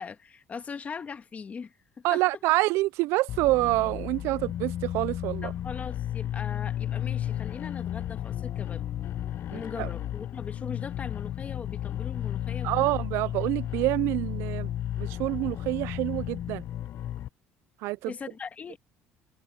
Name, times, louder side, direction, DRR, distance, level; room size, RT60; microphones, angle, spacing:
voice 1, 0.0-2.2 5.4-8.9 9.5-12.9 18.1-18.8, left 5 dB, 35° left, 1.7 m, -40 dB
voice 2, 2.0-5.5 9.5-9.9 12.6-14.7 15.0-16.6 17.8-18.1, right 20 dB, 80° right, 0.4 m, -27 dB
sound 1, 3.3-17.3, left 11 dB, 55° left, 0.8 m, -33 dB
cardioid pair, 100°, 4 cm